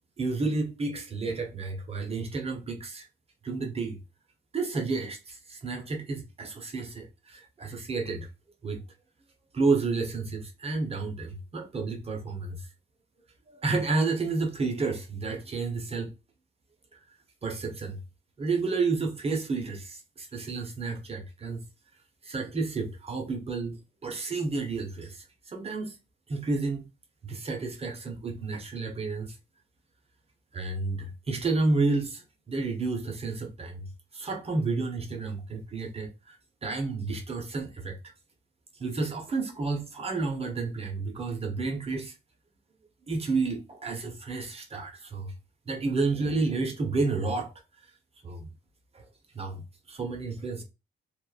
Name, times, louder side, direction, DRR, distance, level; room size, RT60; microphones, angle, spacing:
voice 1, 0.2-3.1 3.4-4.0 4.5-8.3 8.6-8.8 9.5-12.7 13.5-16.1 16.9-17.0 17.4-18.0 18.4-21.6 22.2-26.0 26.3-26.8 27.2-29.4 30.5-38.0 38.7-42.2 43.1-45.3 45.7-47.5 47.8-47.9 48.2-48.5 48.9-49.1 49.3-50.6, right 3 dB, 30° right, 0.6 m, -31 dB
2.8 x 2.3 x 2.3 m
cardioid pair, 130°, 19 cm